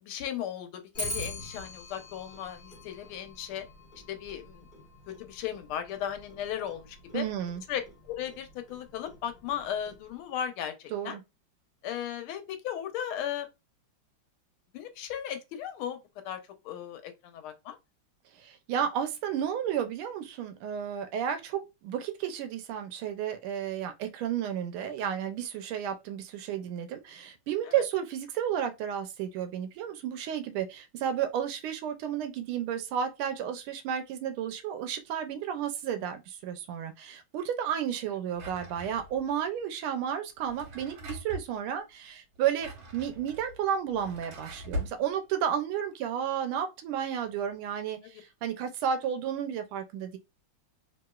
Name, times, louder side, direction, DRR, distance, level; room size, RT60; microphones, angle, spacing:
voice 1, 0.0-3.6 4.1-4.7 5.1-7.3 7.7-11.2 11.8-13.5 14.7-16.0 16.2-17.8 27.6-27.7 48.1-48.2, left 10 dB, 90° left, 1.5 m, -36 dB
Clock, 0.9-10.3, left 1 dB, 30° left, 0.9 m, -44 dB
voice 2, 7.1-7.6 10.9-11.2 18.4-50.2, right 9 dB, 90° right, 1.4 m, -32 dB
Drawer open or close, 38.3-39.3 40.4-41.5 42.3-45.0, equal, 75° right, 1.7 m, -40 dB
3.3 x 2.9 x 2.3 m
omnidirectional pair, 2.3 m